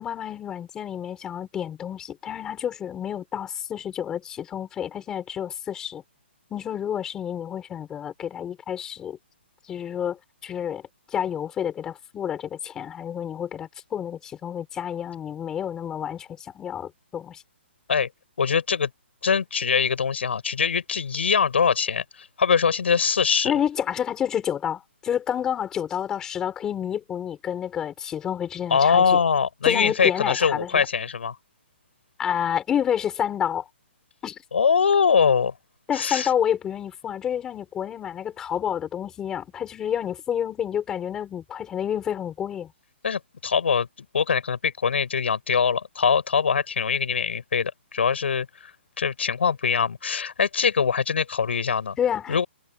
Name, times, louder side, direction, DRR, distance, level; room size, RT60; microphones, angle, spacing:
voice 1, 0.0-6.0 6.5-9.2 9.7-10.8 11.1-17.4 23.4-29.2 29.6-30.9 32.2-33.7 34.2-34.4 35.9-42.7 52.0-52.4, left 9 dB, 10° left, 6.0 m, -29 dB
voice 2, 18.4-18.9 19.2-23.5 28.7-31.4 34.5-35.5 35.9-36.3 43.0-43.9 44.1-52.0 52.3-52.4, left 6 dB, 70° left, 7.0 m, -23 dB
hypercardioid pair, 175°, 6 cm